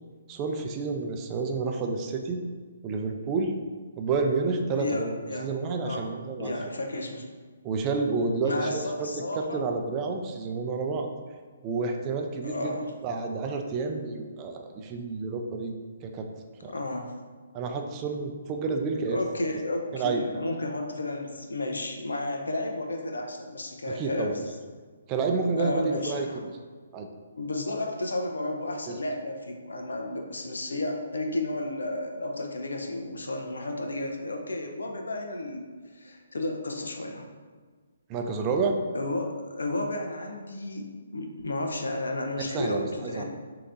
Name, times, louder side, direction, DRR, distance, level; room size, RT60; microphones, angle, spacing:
voice 1, 0.3-2.4 2.8-3.5 4.0-6.5 7.6-9.1 9.4-11.1 11.6-12.7 13.0-15.7 16.0-16.3 16.6-16.7 17.5-19.2 19.9-20.2 23.9-24.4 25.1-26.5 26.9-27.1 28.9-29.0 38.1-38.8 42.4-43.2, right 4 dB, 25° right, 3 dB, 0.5 m, -29 dB
voice 2, 4.8-5.5 5.8-6.1 6.4-7.3 8.4-9.6 12.4-12.9 16.6-17.1 19.1-24.4 25.5-26.4 27.3-35.7 35.9-37.3 38.9-40.9 41.1-43.2, left 2 dB, 85° left, 3 dB, 0.7 m, -32 dB
6.6 x 2.9 x 2.6 m, 1.5 s
hypercardioid pair, 140°, 0 cm